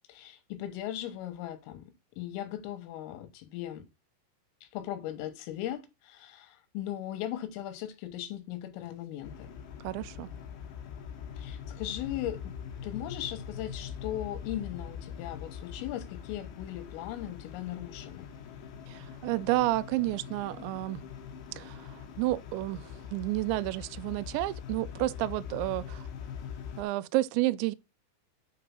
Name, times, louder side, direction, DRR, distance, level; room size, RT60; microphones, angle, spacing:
voice 1, 0.1-3.8 4.7-9.5 11.4-12.5 12.8-18.3, left 12 dB, 90° left, 3.7 m, -38 dB
sound 1, 9.2-26.8, left 7 dB, 75° left, 3.7 m, -43 dB
voice 2, 9.8-10.3 18.9-21.0 21.6-26.1 26.8-27.7, right 17 dB, 85° right, 2.6 m, -31 dB
8.3 x 3.8 x 5.9 m
omnidirectional pair, 5.7 m